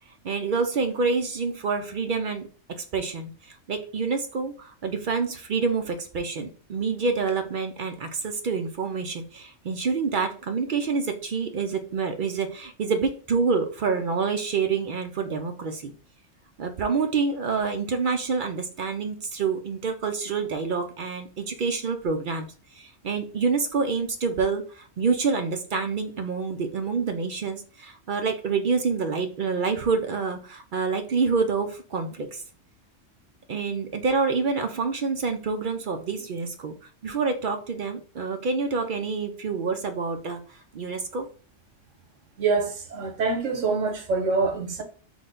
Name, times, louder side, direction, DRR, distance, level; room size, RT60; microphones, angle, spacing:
voice 1, 0.2-2.5 2.8-15.9 16.6-22.5 22.7-32.4 33.5-36.8 37.0-41.3, right 4 dB, 55° right, 0.6 m, -27 dB
voice 2, 42.4-44.8, right 4 dB, 80° right, 1.4 m, -25 dB
6.0 x 2.2 x 3.7 m
omnidirectional pair, 1.3 m